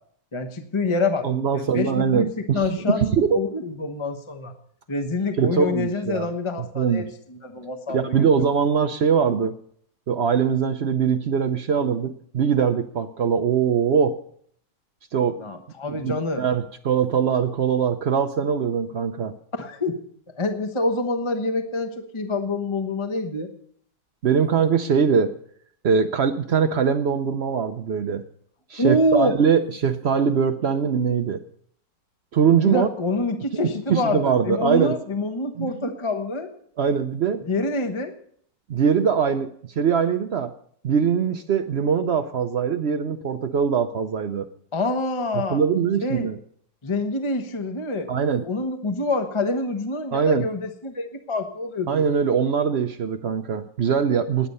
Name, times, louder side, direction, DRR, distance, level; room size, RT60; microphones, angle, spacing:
voice 1, 0.3-1.3 1.5-4.5 4.9-8.3 15.4-16.4 19.6-20.0 20.4-23.5 28.8-29.3 32.6-36.5 37.4-38.1 44.7-45.6 46.0-46.3 46.8-48.1 48.4-52.1, left 2 dB, 20° left, 6 dB, 0.9 m, -26 dB
voice 2, 1.2-3.4 5.4-6.3 6.6-7.1 7.9-9.5 10.1-14.2 15.1-15.4 15.9-19.3 24.2-25.3 25.8-28.2 28.7-31.4 32.3-32.9 33.9-35.0 35.6-35.9 36.8-37.4 38.7-39.5 39.8-40.5 40.8-44.5 45.5-46.4 48.1-48.4 50.1-50.5 51.9-54.5, right 7 dB, 75° right, 7 dB, 0.5 m, -22 dB
19.0 x 8.4 x 5.4 m, 0.63 s
omnidirectional pair, 2.1 m